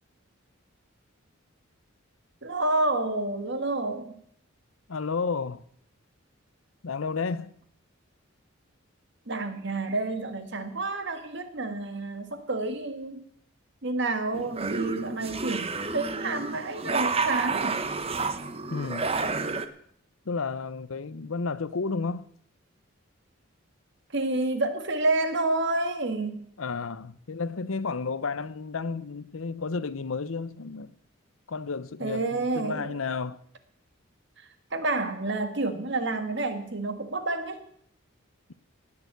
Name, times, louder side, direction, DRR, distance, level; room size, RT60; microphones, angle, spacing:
voice 1, 2.4-4.2 9.3-13.2 13.8-17.8 24.1-26.4 32.0-32.9 34.7-37.6, right 2 dB, 55° right, 1.6 m, -29 dB
voice 2, 4.9-5.6 6.8-7.5 18.7-19.1 20.2-22.3 26.6-31.0 31.5-33.4, left 4 dB, 75° left, 0.7 m, -32 dB
sound 1, 14.3-19.7, right 4 dB, 30° right, 0.8 m, -30 dB
18.0 x 6.9 x 8.3 m
head